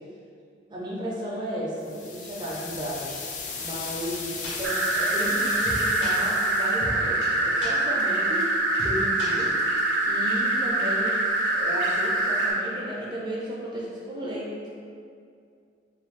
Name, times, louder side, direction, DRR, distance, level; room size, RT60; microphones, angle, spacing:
voice 1, 0.7-3.2 3.6-8.5 8.8-9.6 10.1-11.2 11.5-14.7, equal, 25° right, -5 dB, 0.4 m, -34 dB
sound 1, 1.8-6.9, left 4 dB, 45° left, 0.3 m, -36 dB
sound 2, 4.1-4.2 4.4-4.5 4.8-4.9 5.2-5.3 5.6-6.1 6.4-6.5 6.8-6.9 7.2-7.3 7.6-7.7 8.0-8.1 8.4-8.5 8.8-8.9 9.2-9.8, left 1 dB, 80° left, 0.7 m, -35 dB
sound 3, 4.6-12.5, right 2 dB, 80° right, 0.5 m, -24 dB
2.4 x 2.3 x 3.1 m, 2.3 s
head